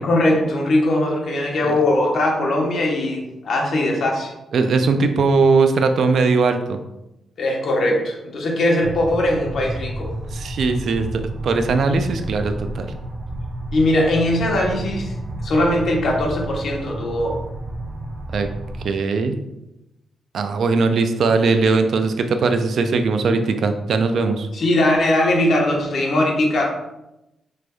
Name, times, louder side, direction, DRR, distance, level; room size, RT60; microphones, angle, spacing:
voice 1, 0.0-4.3 7.4-10.1 13.7-15.1 15.4-17.4 24.5-26.7, left 1 dB, 65° left, 0 dB, 1.0 m, -20 dB
voice 2, 4.5-6.8 10.3-11.1 11.4-12.9 18.3-18.5 18.8-19.4 20.3-24.5, right 4 dB, 65° right, 7 dB, 0.4 m, -19 dB
sound 1, 8.8-18.9, right 1 dB, 35° right, 0.7 m, -31 dB
5.1 x 3.2 x 2.3 m, 0.90 s
cardioid pair, 105°, 0 cm